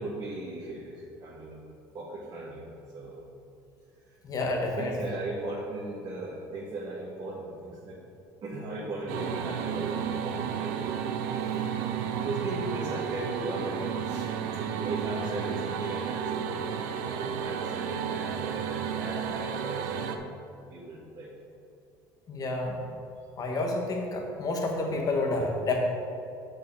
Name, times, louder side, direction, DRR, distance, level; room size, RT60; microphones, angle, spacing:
voice 1, 0.0-1.6 1.9-2.6 2.9-3.2 4.1-4.2 4.8-8.0 8.4-11.0 11.5-11.7 12.1-20.3 20.7-21.3, right 2 dB, 45° right, -7 dB, 2.0 m, -37 dB
voice 2, 4.2-4.9 22.3-22.9 23.4-25.8, left 2 dB, 40° left, 1 dB, 1.6 m, -29 dB
sound 1, 9.1-20.2, right 8 dB, 90° right, 0.5 m, -32 dB
7.6 x 6.7 x 4.8 m, 2.6 s
supercardioid pair, 90°, 9 cm